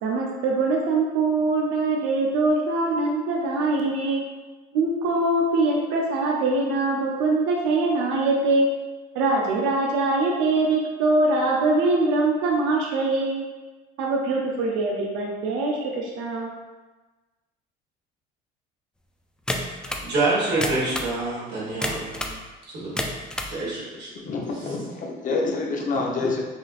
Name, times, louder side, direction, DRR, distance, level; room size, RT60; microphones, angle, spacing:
voice 1, 0.0-4.2 4.7-8.7 9.1-13.4 14.0-16.5, right 2 dB, 85° right, -1 dB, 0.6 m, -23 dB
sound 1, 19.5-20.1 20.5-21.1 21.8-22.4 22.8-23.6, left 1 dB, 5° left, 0.4 m, -29 dB
voice 2, 19.8-22.4 22.6-23.1 23.5-24.1 24.5-24.7, right 2 dB, 60° right, -6 dB, 1.5 m, -27 dB
voice 3, 24.2-26.4, left 3 dB, 40° left, -1 dB, 0.8 m, -27 dB
5.4 x 2.5 x 2.4 m, 1.2 s
supercardioid pair, 95°, 20 cm